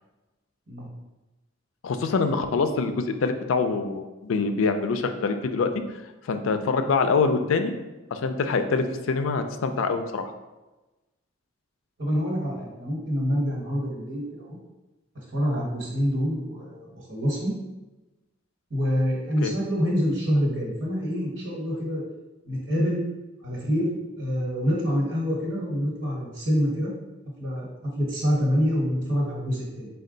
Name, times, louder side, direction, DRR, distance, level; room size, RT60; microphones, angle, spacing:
voice 1, 1.8-5.7 6.2-7.7 8.1-10.3 19.4-19.5, left 4 dB, 80° left, 8 dB, 0.4 m, -25 dB
voice 2, 12.0-14.6 15.3-17.5 18.7-22.0 22.4-23.0 23.4-26.9 27.4-29.9, equal, 65° right, -4 dB, 1.3 m, -26 dB
4.4 x 2.3 x 3.8 m, 1.1 s
head